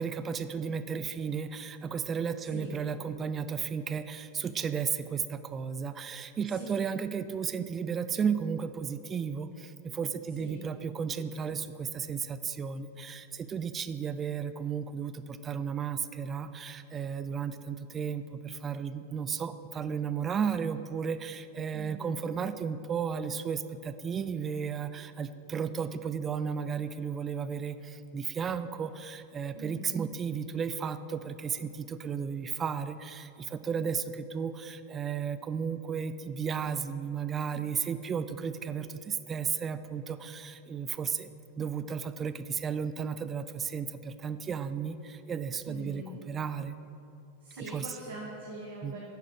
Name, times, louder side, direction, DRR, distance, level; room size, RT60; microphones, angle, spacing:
voice 1, 0.0-41.3 41.6-46.8 47.6-47.9 48.8-48.9, right 6 dB, 25° right, 11 dB, 0.3 m, -34 dB
voice 2, 6.5-6.8 10.4-10.6 21.7-22.1 29.5-29.9 45.7-46.1 47.4-49.1, right 1 dB, 60° right, -4 dB, 1.2 m, -43 dB
9.3 x 4.9 x 4.7 m, 2.8 s
figure-of-eight pair, 90°, 0 cm